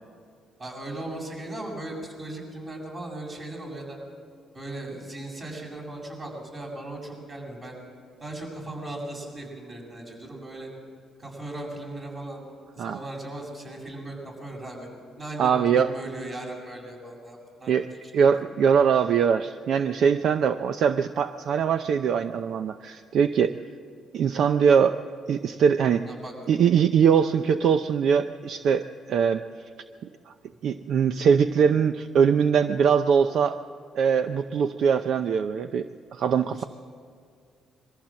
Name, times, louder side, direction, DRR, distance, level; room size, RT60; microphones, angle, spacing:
voice 1, 0.6-4.0 4.5-7.8 8.2-10.7 11.2-12.4 12.7-14.9 15.2-17.7 18.0-18.5 26.1-26.3 36.5-36.7, right 1 dB, 35° right, 0 dB, 7.6 m, -38 dB
voice 2, 15.4-15.9 17.7-17.9 18.1-23.5 24.1-25.0 25.3-26.0 26.5-29.4 30.6-33.6 33.9-35.9 36.1-36.6, right 7 dB, 70° right, 9 dB, 0.6 m, -22 dB
23.0 x 15.0 x 7.6 m, 2.3 s
cardioid pair, 90°, 0 cm